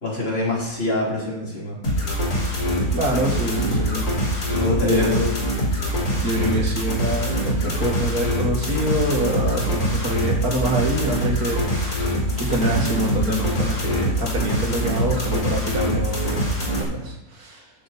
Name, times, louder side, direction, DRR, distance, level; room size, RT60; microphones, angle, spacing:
voice 1, 0.0-1.8 4.5-5.3, left 2 dB, 40° left, -4 dB, 3.6 m, -25 dB
sound 1, 1.8-16.8, equal, 85° left, 3.6 m, -24 dB
voice 2, 2.9-4.1 4.4-5.1 6.2-12.0 12.4-17.6, right 1 dB, 85° right, 0 dB, 2.6 m, -26 dB
13.5 x 6.9 x 4.1 m, 0.91 s
omnidirectional pair, 1.5 m